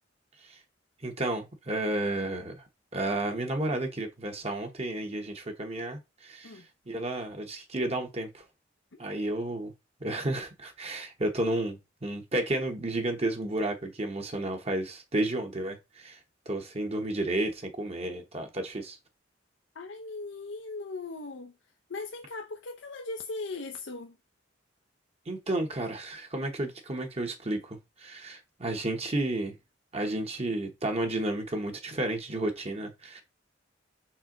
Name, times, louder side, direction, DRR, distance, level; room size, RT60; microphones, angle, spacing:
voice 1, 1.0-2.6 2.9-8.4 9.0-9.7 10.0-16.2 16.4-19.0 25.3-29.5 29.9-33.2, right 1 dB, 35° right, 1.2 m, -32 dB
voice 2, 19.7-21.5 21.9-24.2, left 3 dB, 70° left, 0.7 m, -39 dB
5.5 x 4.5 x 3.9 m
head